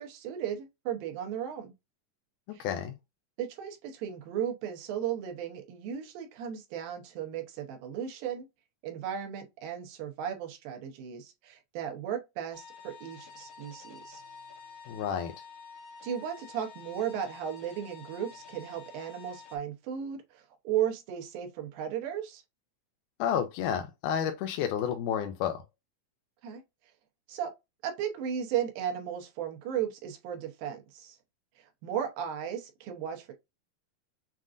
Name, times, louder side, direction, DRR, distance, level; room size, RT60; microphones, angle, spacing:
voice 1, 0.0-1.7 2.5-2.6 3.4-8.5 8.8-14.2 16.0-22.4 26.4-26.6 27.3-27.5 27.8-31.2 31.8-33.3, right 9 dB, 85° right, 2.8 m, -35 dB
voice 2, 2.6-2.9 14.9-15.3 23.2-25.6, left 8 dB, 80° left, 1.9 m, -30 dB
sound 1, 12.5-19.6, left 5 dB, 55° left, 1.5 m, -49 dB
7.3 x 2.5 x 2.5 m
omnidirectional pair, 4.0 m